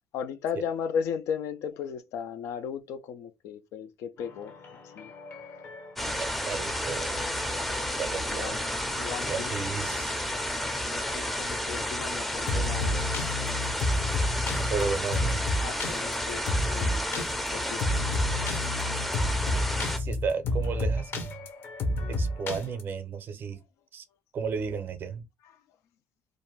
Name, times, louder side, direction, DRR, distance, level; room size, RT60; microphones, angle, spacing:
voice 1, 0.1-5.1 8.1-8.6 8.9-9.5 10.8-13.0 14.8-15.0 15.6-18.1 25.4-25.5, left 7 dB, 80° left, 0.4 m, -36 dB
sound 1, 4.2-22.8, left 1 dB, 50° left, 0.7 m, -32 dB
sound 2, 6.0-20.0, equal, 5° left, 0.5 m, -31 dB
voice 2, 6.1-7.2 8.0-8.6 9.3-10.2 14.6-15.4 20.0-21.3 22.1-23.6 23.9-24.0 24.3-25.2, right 5 dB, 50° right, 0.6 m, -33 dB
2.5 x 2.1 x 3.1 m
cardioid pair, 115°, 5 cm